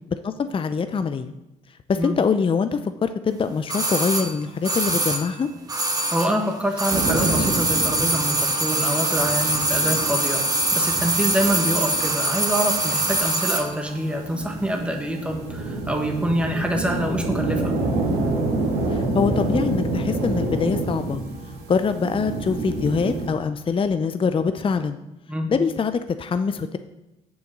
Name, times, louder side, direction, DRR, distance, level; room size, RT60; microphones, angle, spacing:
voice 1, 0.1-1.3 1.9-5.5 18.9-21.2 21.7-25.0 25.5-26.8, left 5 dB, 35° left, 10 dB, 0.6 m, -24 dB
sound 1, 3.7-6.5 6.7-13.7 14.0-14.1, right 1 dB, 20° right, 1.5 m, -23 dB
voice 2, 6.1-17.8 25.3-25.5, equal, 5° right, 2 dB, 1.5 m, -26 dB
sound 2, 6.9-23.3, right 2 dB, 75° right, 2.0 m, -28 dB
7.1 x 6.3 x 6.1 m, 0.96 s
hypercardioid pair, 50°, 16 cm